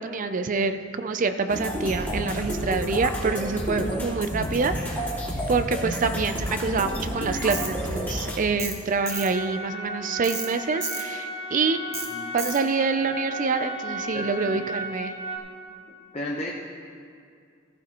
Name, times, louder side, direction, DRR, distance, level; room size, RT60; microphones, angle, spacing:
voice 1, 0.0-11.8 12.3-15.1, right 4 dB, 40° right, 9 dB, 0.5 m, -26 dB
sound 1, 1.5-8.4, equal, 10° left, 2.2 m, -30 dB
Tools, 7.5-7.7 8.6-8.8 9.1-9.3 10.2-10.5 10.8-11.0 11.9-12.1 12.4-12.6, right 3 dB, 15° right, 1.1 m, -32 dB
sound 2, 9.1-15.4, equal, 75° right, 2.8 m, -35 dB
voice 2, 14.1-14.6 16.1-16.5, left 1 dB, 30° left, -3 dB, 0.9 m, -33 dB
15.0 x 14.0 x 3.0 m, 2.3 s
head